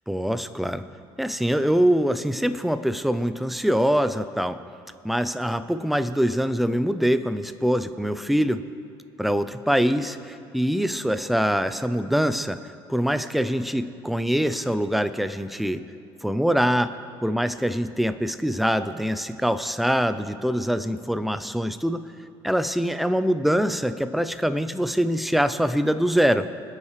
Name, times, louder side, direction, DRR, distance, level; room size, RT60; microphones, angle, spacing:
voice 1, 0.1-0.8 1.2-4.6 5.0-8.6 9.2-12.6 12.9-15.8 16.2-17.0 17.2-22.0 22.4-26.6, equal, ahead, 11 dB, 0.4 m, -24 dB
24.5 x 8.7 x 3.2 m, 2.4 s
cardioid pair, 150°, 10 cm